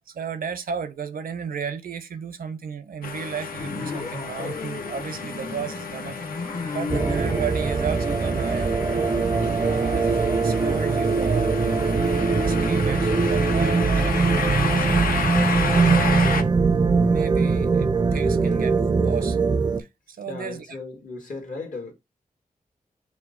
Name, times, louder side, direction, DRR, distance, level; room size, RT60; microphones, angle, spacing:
voice 1, 0.1-6.2 6.7-9.1 9.6-11.5 12.1-15.1 15.4-16.5 16.8-19.4 19.8-20.8, right 7 dB, 80° right, 0.5 m, -34 dB
sound 1, 3.0-16.4, left 5 dB, 85° left, 0.5 m, -31 dB
sound 2, 3.6-7.5, left 4 dB, 50° left, 0.9 m, -34 dB
sound 3, 6.9-19.8, right 4 dB, 30° right, 0.4 m, -21 dB
voice 2, 20.2-21.9, left 3 dB, 65° left, 1.4 m, -36 dB
4.8 x 2.1 x 3.7 m
wide cardioid pair, 75°, 15 cm